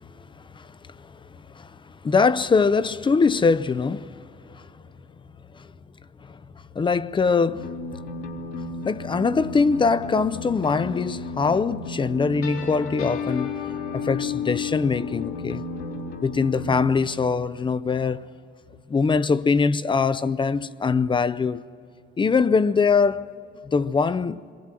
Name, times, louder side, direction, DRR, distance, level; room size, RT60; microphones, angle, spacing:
voice 1, 0.5-1.2 1.5-4.2 4.5-4.6 5.5-5.7 6.2-6.4 6.7-7.7 8.8-13.6 13.9-15.6 16.2-18.3 18.9-21.6 22.2-23.3 23.6-24.4, left 5 dB, 25° left, 0.6 m, -22 dB
sound 1, 7.6-16.8, left 4 dB, 90° left, 3.3 m, -33 dB
29.0 x 22.5 x 7.6 m
cardioid pair, 120°, 20 cm